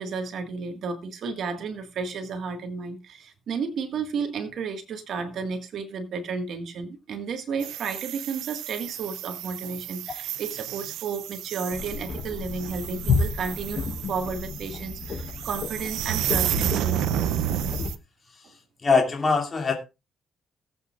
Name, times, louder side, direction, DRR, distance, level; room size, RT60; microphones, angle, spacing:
voice 1, 0.0-13.8 14.1-17.1 18.4-18.5, right 5 dB, 65° right, 1.7 m, -32 dB
sound 1, 7.6-18.0, right 12 dB, 90° right, 0.6 m, -31 dB
sound 2, 11.7-17.9, left 4 dB, 65° left, 3.8 m, -31 dB
voice 2, 18.8-19.7, left 4 dB, 35° left, 2.5 m, -22 dB
19.5 x 8.3 x 2.4 m
cardioid pair, 90°, 0 cm